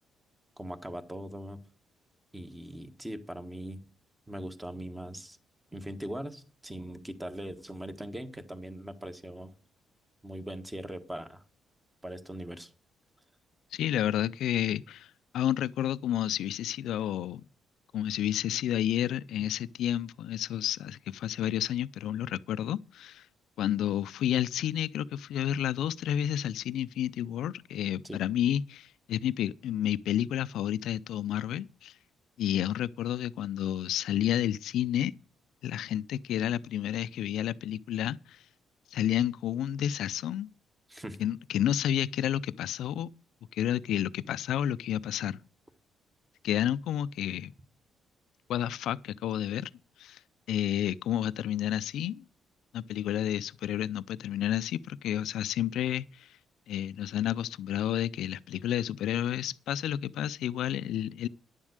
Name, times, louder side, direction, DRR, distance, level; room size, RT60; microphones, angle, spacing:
voice 1, 0.6-1.6 2.3-3.8 4.3-5.4 5.7-9.5 10.2-11.4 12.0-12.7 28.0-28.2 40.9-41.2, right 1 dB, 10° right, 1.5 m, -40 dB
voice 2, 13.7-17.4 17.9-23.3 23.6-31.9 32.4-35.1 35.6-38.4 38.9-40.5 41.2-43.1 43.5-45.4 46.4-47.5 48.5-49.7 50.0-50.2 50.5-52.2 52.7-56.3 56.7-61.3, left 11 dB, 80° left, 0.5 m, -30 dB
10.5 x 7.3 x 6.5 m
cardioid pair, 90°, 0 cm